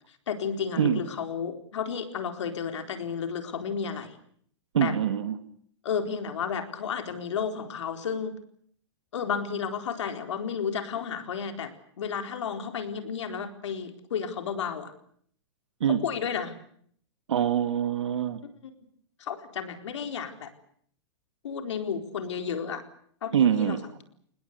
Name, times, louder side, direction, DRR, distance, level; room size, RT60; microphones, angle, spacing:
voice 1, 0.1-4.2 4.8-5.0 5.8-8.4 9.1-14.9 15.9-16.6 18.6-18.7 19.2-20.5 21.4-22.8 23.2-24.0, left 7 dB, 80° left, 7 dB, 4.2 m, -32 dB
voice 2, 4.7-5.3 15.8-16.0 17.3-18.4 23.3-23.8, right 9 dB, 85° right, 10 dB, 2.1 m, -24 dB
26.5 x 20.0 x 8.1 m, 0.63 s
hypercardioid pair, 155°, 15 cm